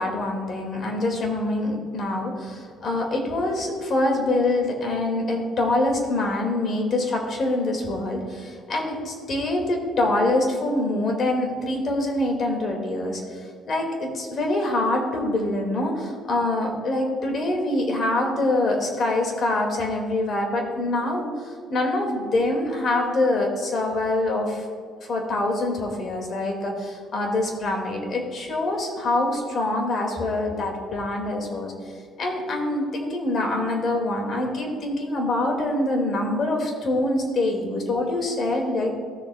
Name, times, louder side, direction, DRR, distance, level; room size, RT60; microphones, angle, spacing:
voice 1, 0.0-24.7 25.1-31.7 32.2-38.9, left 2 dB, 50° left, 2 dB, 2.1 m, -25 dB
15.0 x 6.6 x 2.3 m, 2.1 s
supercardioid pair, 80°, 0 cm